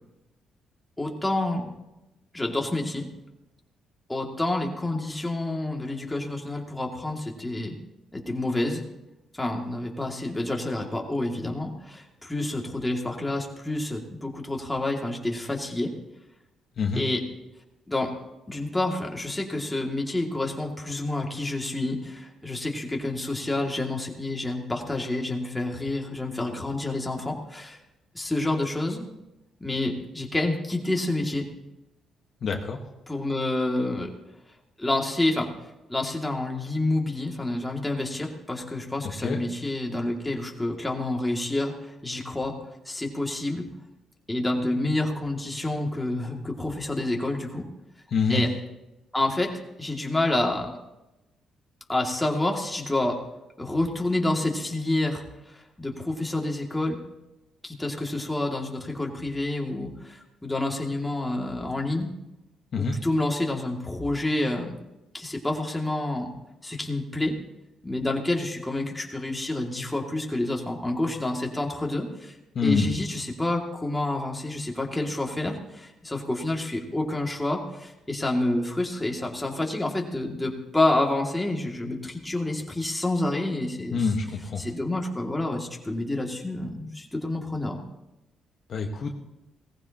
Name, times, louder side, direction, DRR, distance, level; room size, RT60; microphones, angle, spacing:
voice 1, 1.0-1.7 2.3-3.1 4.1-7.7 8.1-8.8 9.3-15.9 16.9-17.2 17.9-18.1 18.5-27.8 28.1-29.0 29.6-31.5 33.1-34.1 34.8-35.5 35.9-42.5 42.9-43.6 44.3-47.7 48.3-48.5 49.1-49.5 49.8-50.7 51.9-53.2 53.6-57.0 57.6-62.1 62.8-64.7 65.1-66.3 66.6-67.3 67.8-72.4 72.6-84.0 84.6-87.8, left 2 dB, 10° left, 0 dB, 2.4 m, -28 dB
voice 2, 32.4-32.8 39.2-39.4 48.1-48.4 62.7-62.9 72.5-72.9 83.9-84.7 88.7-89.2, left 4 dB, 55° left, 2 dB, 1.4 m, -26 dB
18.5 x 15.0 x 3.0 m, 0.96 s
cardioid pair, 90°, 0 cm